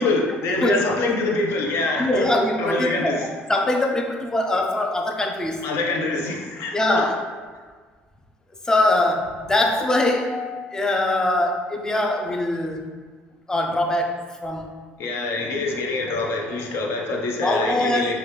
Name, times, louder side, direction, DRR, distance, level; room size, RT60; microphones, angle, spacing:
voice 1, 0.0-2.3 2.6-3.2 5.6-7.1 15.0-18.2, left 2 dB, 70° left, 1 dB, 0.5 m, -25 dB
voice 2, 2.0-5.7 6.7-7.2 8.7-12.9 13.5-14.7 17.4-18.2, left 1 dB, 15° left, 2 dB, 0.4 m, -23 dB
3.0 x 2.3 x 3.2 m, 1.5 s
cardioid pair, 105°, 4 cm